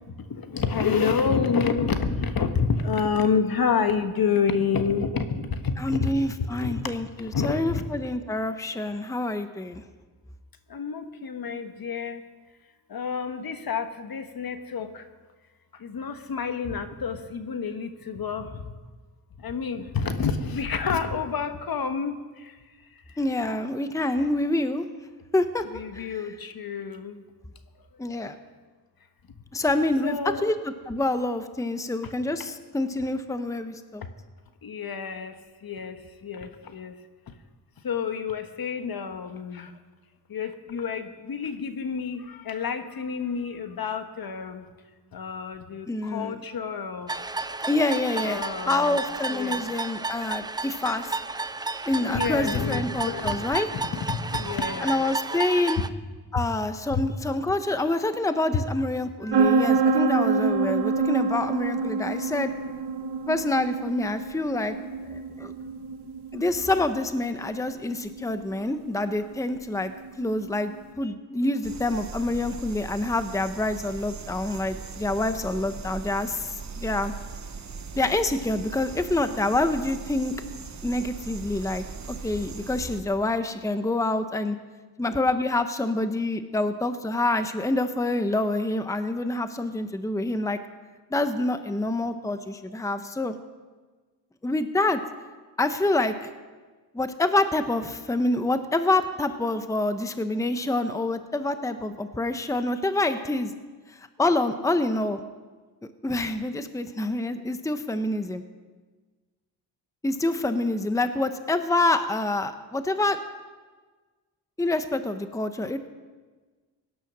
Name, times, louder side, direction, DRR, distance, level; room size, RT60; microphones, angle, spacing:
voice 1, 0.3-6.2 6.6-6.9 7.3-7.8 10.7-12.2 12.9-15.0 15.8-18.7 19.4-22.2 25.7-27.2 30.0-30.5 34.6-35.3 35.6-36.0 36.2-36.9 37.8-39.7 40.3-44.6 45.1-47.1 48.2-49.0 49.3-49.6 52.0-53.4 53.7-55.0 56.9-57.0 58.5-58.6, left 6 dB, 55° left, 8 dB, 1.3 m, -28 dB
voice 2, 5.8-9.8 23.2-24.9 25.3-25.6 25.9-26.1 28.0-28.4 29.5-30.5 30.9-34.0 45.9-46.3 47.7-51.2 51.9-53.7 54.8-55.8 56.3-62.5 63.3-64.7 65.1-65.5 66.3-69.9 70.2-70.7 71.0-77.1 77.9-80.3 80.8-81.8 82.2-84.6 85.0-90.6 91.1-93.3 94.4-95.0 95.6-96.3 96.9-103.5 104.2-105.2 106.0-108.4 110.0-113.2 114.6-115.8, left 2 dB, 10° left, 9 dB, 0.9 m, -27 dB
sound 1, 47.1-55.9, right 3 dB, 10° right, 0.5 m, -32 dB
sound 2, 59.3-70.8, right 4 dB, 70° right, 1.0 m, -27 dB
sound 3, 71.6-83.0, right 5 dB, 40° right, 1.2 m, -39 dB
17.5 x 10.0 x 6.1 m, 1.4 s
cardioid pair, 85°, 42 cm